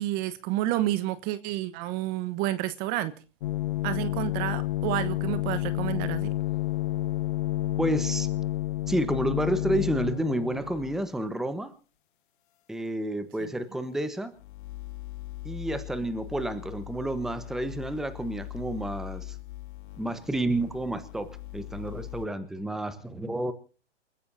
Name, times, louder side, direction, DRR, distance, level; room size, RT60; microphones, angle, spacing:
voice 1, 0.0-3.1 3.8-6.3, right 14 dB, 25° right, 1.1 m, -30 dB
sound 1, 3.4-11.1 14.4-22.3, left 15 dB, 45° left, 0.9 m, -32 dB
voice 2, 7.8-8.3 8.9-11.7 12.7-14.4 15.4-19.4 20.0-23.5, right 1 dB, ahead, 1.1 m, -30 dB
28.5 x 15.0 x 2.7 m
hypercardioid pair, 135°, 36 cm